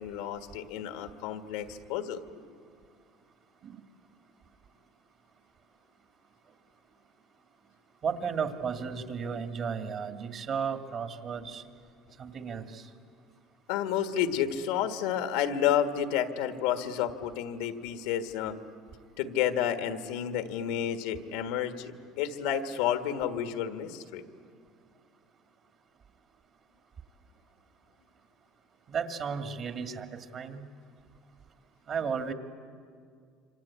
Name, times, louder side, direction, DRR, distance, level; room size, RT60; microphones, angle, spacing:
voice 1, 0.0-2.5 13.7-18.6 19.2-24.2, left 9 dB, 80° left, 8 dB, 1.6 m, -30 dB
voice 2, 8.0-11.6 12.2-12.9 28.9-30.6 31.9-32.3, right 6 dB, 40° right, 6 dB, 2.0 m, -34 dB
27.0 x 25.5 x 8.4 m, 2.3 s
cardioid pair, 125°, 0 cm